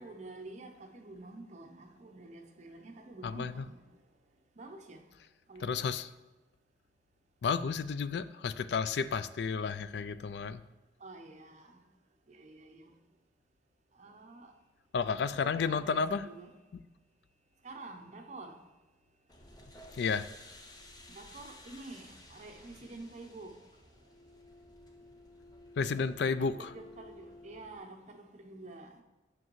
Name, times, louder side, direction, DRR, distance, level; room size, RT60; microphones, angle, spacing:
voice 1, 0.0-3.8 4.6-5.0 5.5-5.7 11.0-11.9 12.3-12.9 14.0-14.5 15.1-16.5 17.6-18.6 21.1-23.5 26.4-29.0, right 2 dB, 40° right, 0.7 m, -48 dB
voice 2, 3.2-3.6 5.6-6.1 7.4-10.6 14.9-16.2 20.0-20.3 25.8-26.7, left 5 dB, 70° left, 0.3 m, -32 dB
sound 1, 19.3-27.8, left 1 dB, 25° left, 0.7 m, -54 dB
7.7 x 6.0 x 3.1 m
head